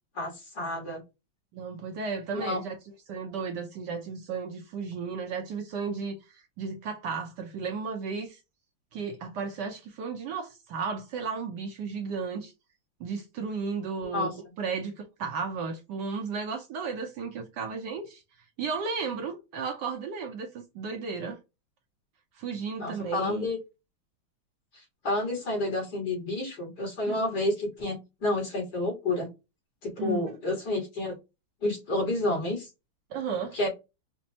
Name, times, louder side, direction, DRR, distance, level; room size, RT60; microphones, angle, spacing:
voice 1, 0.1-1.0 2.3-2.6 14.0-14.3 22.8-23.6 24.7-29.3 29.8-31.2 31.6-32.7 33.5-33.7, left 2 dB, 55° left, 2.1 m, -30 dB
voice 2, 1.5-2.8 3.1-8.4 8.9-12.5 13.0-14.3 14.6-18.2 18.6-21.4 22.3-23.5 27.1-27.2 30.0-30.3 33.1-33.6, right 5 dB, 70° right, 1.1 m, -34 dB
5.1 x 2.0 x 2.7 m
omnidirectional pair, 2.1 m